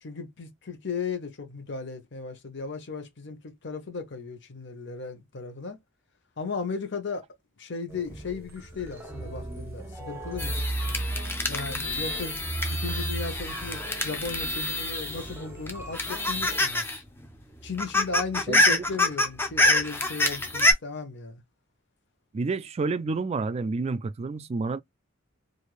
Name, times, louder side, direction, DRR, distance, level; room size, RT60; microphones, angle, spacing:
voice 1, 0.0-5.8 6.4-7.2 7.6-10.6 11.5-12.4 12.7-16.8 17.6-21.4, left 4 dB, 60° left, 0.9 m, -36 dB
sound 1, 7.9-16.6, right 2 dB, 10° right, 1.0 m, -36 dB
sound 2, 10.4-15.3 15.7-17.0 17.3-17.4 17.6-20.7, left 2 dB, 10° left, 0.6 m, -26 dB
voice 2, 18.5-18.8 22.3-24.8, right 4 dB, 30° right, 0.3 m, -29 dB
3.2 x 2.6 x 2.4 m
head